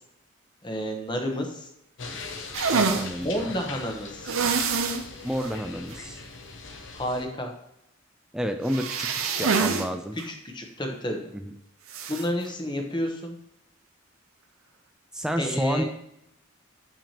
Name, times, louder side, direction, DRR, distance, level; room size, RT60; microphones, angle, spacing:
voice 1, 0.6-1.7 3.2-4.3 6.9-7.5 10.3-11.2 12.1-13.3 15.4-15.8, equal, 20° left, 3 dB, 0.9 m, -30 dB
sound 1, 2.0-7.3, left 4 dB, 60° left, 0.8 m, -40 dB
sound 2, 2.5-3.1 4.3-5.0 5.4-5.5 5.9-6.0 8.7-9.9 10.2-10.3 11.9-12.2, right 5 dB, 85° right, 0.7 m, -25 dB
voice 2, 2.7-3.5 5.2-6.2 8.3-10.2 11.3-11.5 12.0-12.1 15.1-15.8, equal, 5° right, 5 dB, 0.3 m, -30 dB
6.9 x 5.8 x 2.9 m, 0.80 s
head